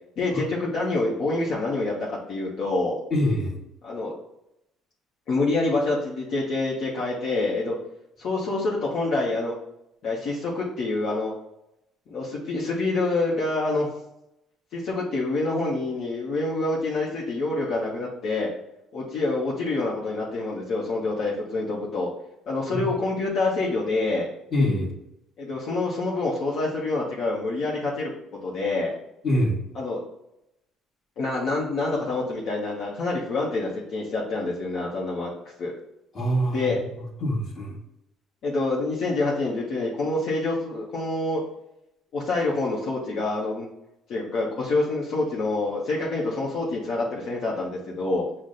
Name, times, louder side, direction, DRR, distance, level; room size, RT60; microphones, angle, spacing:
voice 1, 0.2-1.9 2.3-3.0 3.8-4.1 5.3-7.8 8.2-9.6 10.0-11.3 12.1-13.9 14.7-18.5 18.9-22.1 22.5-24.3 25.4-28.1 28.4-28.9 29.7-30.0 31.2-35.3 35.6-35.7 36.5-36.8 38.4-41.4 42.1-43.7 44.1-48.3, left 2 dB, 55° left, -5 dB, 0.9 m, -26 dB
voice 2, 3.1-3.5 22.7-22.9 24.5-24.9 29.2-29.6 36.1-37.8, equal, 35° left, -2 dB, 1.5 m, -25 dB
6.0 x 2.1 x 3.8 m, 0.85 s
cardioid pair, 125°, 0 cm